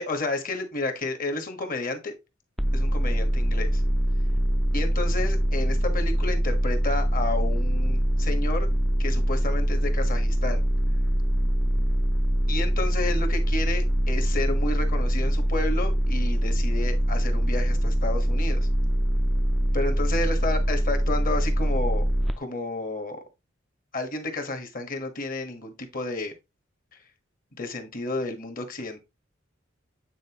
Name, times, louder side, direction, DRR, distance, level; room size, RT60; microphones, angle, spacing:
voice 1, 0.0-2.1 2.7-3.8 4.7-8.7 9.0-10.6 12.5-18.7 19.7-22.0 22.4-23.2 23.9-26.3 27.5-29.0, left 2 dB, 45° left, 1.4 m, -31 dB
sound 1, 2.6-22.3, equal, ahead, 0.4 m, -23 dB
9.0 x 4.2 x 3.0 m
head